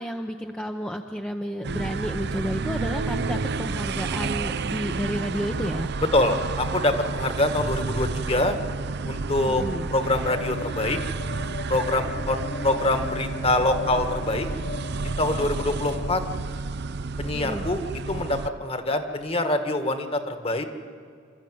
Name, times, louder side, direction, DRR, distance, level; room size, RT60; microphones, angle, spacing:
voice 1, 0.0-5.9 9.5-9.9 12.4-13.1 17.3-17.6, equal, 5° left, 3 dB, 0.8 m, -31 dB
sound 1, 1.6-18.5, right 4 dB, 60° right, 0.6 m, -30 dB
voice 2, 6.1-8.5 9.0-9.6 9.9-11.0 11.7-14.5 15.2-16.2 17.2-17.8 18.1-20.6, left 2 dB, 30° left, 8 dB, 1.6 m, -25 dB
sound 2, 10.2-16.4, left 4 dB, 50° left, 0.9 m, -38 dB
27.5 x 13.5 x 9.4 m, 2.3 s
head